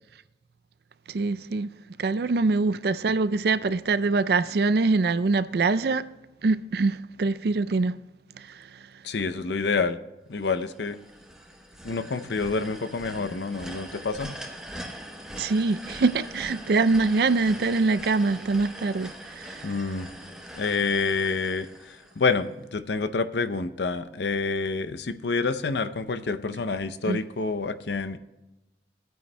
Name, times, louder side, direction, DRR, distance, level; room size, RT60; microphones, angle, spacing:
voice 1, 1.1-1.7 2.0-6.1 6.4-8.0 8.4-8.8 15.4-19.7 27.1-27.2, right 3 dB, 60° right, 0.4 m, -24 dB
voice 2, 9.0-10.0 10.3-11.0 11.8-14.4 19.6-20.1 20.6-28.2, left 4 dB, 75° left, 0.6 m, -28 dB
sound 1, 10.4-22.5, equal, 5° right, 1.0 m, -42 dB
18.5 x 9.2 x 2.2 m
head